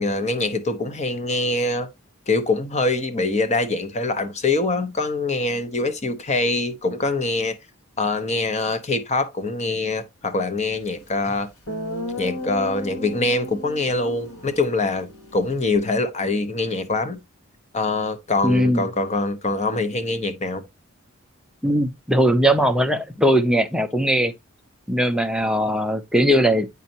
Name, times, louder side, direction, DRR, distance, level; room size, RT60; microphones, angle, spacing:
voice 1, 0.0-1.9 2.3-7.6 8.0-11.5 12.2-17.2 17.7-20.6, left 3 dB, 30° left, 0.8 m, -24 dB
Guitar, 11.1-11.2 11.7-15.8, left 1 dB, 75° left, 1.9 m, -34 dB
voice 2, 18.4-18.8 21.6-24.3 24.9-26.7, equal, 5° right, 0.5 m, -19 dB
8.2 x 5.3 x 2.8 m
head